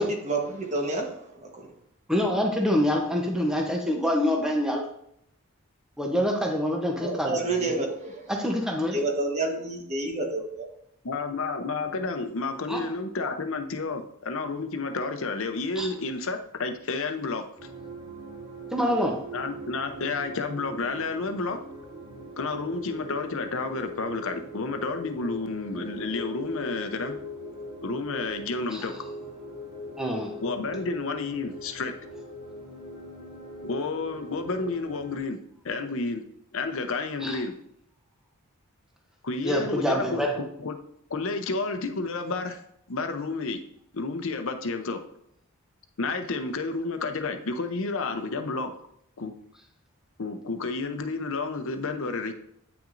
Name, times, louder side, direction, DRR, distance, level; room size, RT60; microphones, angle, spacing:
voice 1, 0.0-1.7 7.0-8.3 8.9-10.7, right 2 dB, 30° right, 1 dB, 1.2 m, -29 dB
voice 2, 2.1-4.8 6.0-7.8 8.3-9.0 12.7-12.8 15.8-15.9 18.7-19.1 28.7-28.9 30.0-30.3 37.2-37.4 39.4-40.3, equal, 5° right, 0 dB, 0.8 m, -26 dB
voice 3, 11.0-17.4 19.3-21.6 22.4-27.1 27.8-28.9 30.4-31.9 33.6-35.4 35.6-36.2 36.5-37.5 39.2-40.8 41.1-42.6 42.9-43.6 43.9-45.0 46.0-48.7 49.2-49.3 50.2-52.3, left 3 dB, 60° left, 6 dB, 0.7 m, -30 dB
sound 1, 17.6-35.2, equal, 50° right, 2.4 m, -41 dB
8.9 x 5.9 x 2.6 m, 0.72 s
head